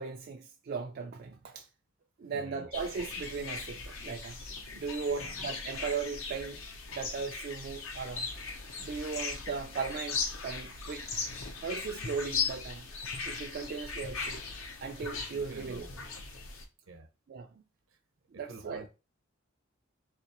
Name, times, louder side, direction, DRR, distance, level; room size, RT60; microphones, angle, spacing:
voice 1, 0.0-1.7 2.2-4.4 4.7-6.6 6.9-8.3 8.8-11.1 11.6-12.9 13.2-14.4 14.8-15.9 17.3-17.6 18.3-18.9, right 5 dB, 50° right, 0.4 m, -37 dB
voice 2, 2.3-2.7 5.1-5.3 15.3-16.1 16.9-17.1 18.5-18.9, right 3 dB, 80° right, 0.9 m, -48 dB
sound 1, 2.7-16.6, left 4 dB, 75° left, 0.7 m, -38 dB
4.0 x 2.9 x 2.9 m
head